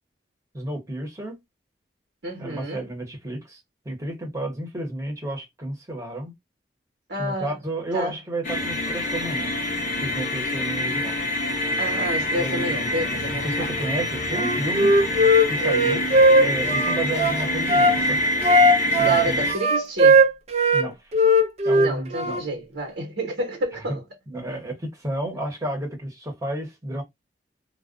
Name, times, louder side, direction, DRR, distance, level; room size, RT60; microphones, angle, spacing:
voice 1, 0.5-1.4 2.4-3.6 3.8-6.3 7.2-9.5 10.0-11.1 12.3-15.0 15.5-18.2 19.0-19.4 20.7-21.0 21.6-22.4 24.3-27.0, right 1 dB, 20° right, 1.0 m, -32 dB
voice 2, 2.2-2.9 7.1-7.6 7.9-8.2 11.8-13.7 19.0-20.3 21.7-24.0, right 1 dB, 80° right, 1.0 m, -30 dB
sound 1, 8.4-19.5, left 1 dB, 50° left, 0.6 m, -26 dB
Wind instrument woodwind instrument, 14.3-18.0 18.4-20.9 21.1-22.4, right 1 dB, 40° right, 0.5 m, -18 dB
2.3 x 2.2 x 2.4 m
head